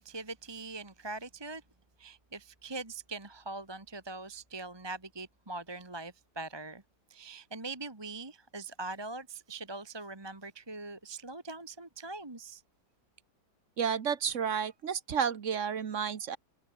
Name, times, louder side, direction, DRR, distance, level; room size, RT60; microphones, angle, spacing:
voice 1, 0.0-1.6 2.0-6.8 7.1-12.6, right 3 dB, 15° right, 1.4 m, -42 dB
voice 2, 13.8-16.4, right 7 dB, 45° right, 1.3 m, -31 dB
omnidirectional pair, 2.1 m